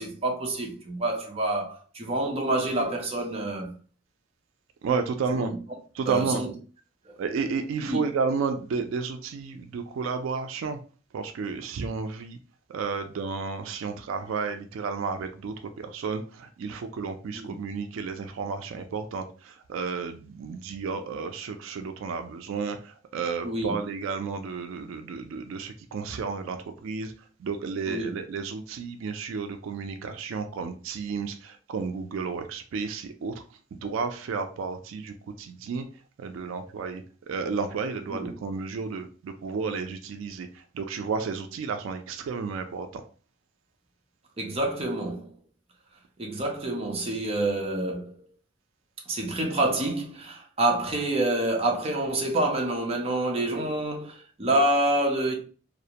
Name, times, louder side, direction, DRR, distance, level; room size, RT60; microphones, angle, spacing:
voice 1, 0.0-3.7 5.3-5.6 6.0-6.5 7.1-7.2 7.8-8.0 17.3-17.6 23.4-23.8 27.9-28.1 38.1-38.3 44.4-45.3 46.2-48.2 49.1-55.3, right 1 dB, 30° right, 0.5 m, -27 dB
voice 2, 4.8-5.5 6.0-6.4 7.2-10.8 11.1-12.4 12.7-27.1 27.4-33.3 33.7-35.8 36.2-40.5 40.7-43.0, right 5 dB, 85° right, 0.3 m, -32 dB
2.4 x 2.1 x 2.8 m
head